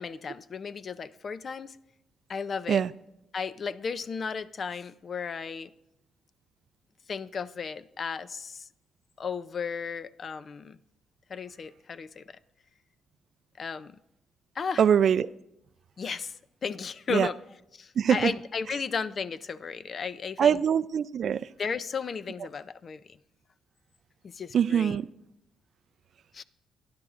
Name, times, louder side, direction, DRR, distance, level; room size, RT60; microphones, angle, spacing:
voice 1, 0.0-1.8 2.3-2.8 3.3-5.7 7.1-8.7 9.2-10.8 11.3-12.4 13.6-14.0 14.5-14.8 16.0-16.4 16.6-17.4 17.7-20.6 21.6-23.2 24.2-25.0 26.3-26.4, left 5 dB, 45° left, 0.5 m, -34 dB
voice 2, 14.8-15.3 17.1-17.3 18.0-18.3 20.4-21.4 24.5-25.0, right 8 dB, 60° right, 0.3 m, -23 dB
24.0 x 10.5 x 2.5 m
cardioid pair, 90°, 0 cm